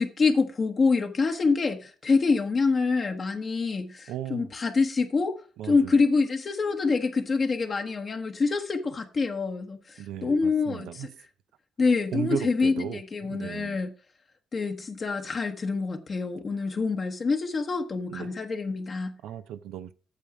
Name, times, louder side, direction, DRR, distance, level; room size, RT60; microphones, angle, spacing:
voice 1, 0.0-5.4 5.7-11.1 11.8-13.9 14.5-19.1, left 4 dB, 40° left, 1.0 m, -26 dB
voice 2, 4.1-4.5 5.6-6.0 10.0-11.1 12.1-13.8 18.1-18.3 19.2-19.9, right 11 dB, 85° right, 0.5 m, -36 dB
8.4 x 7.0 x 4.9 m
cardioid pair, 90°, 0 cm